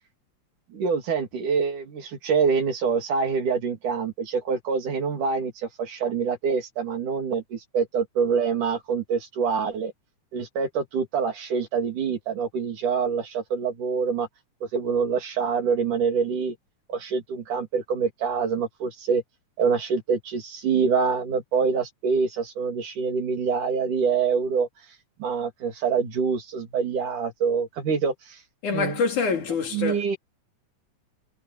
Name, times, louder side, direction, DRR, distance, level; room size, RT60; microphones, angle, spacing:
voice 1, 0.7-9.9 10.3-14.3 14.6-16.6 16.9-19.2 19.6-24.7 25.2-28.4 28.7-29.0 29.7-30.2, right 5 dB, 85° right, 4.7 m, -25 dB
voice 2, 28.6-30.2, left 5 dB, 75° left, 4.7 m, -26 dB
omnidirectional pair, 3.5 m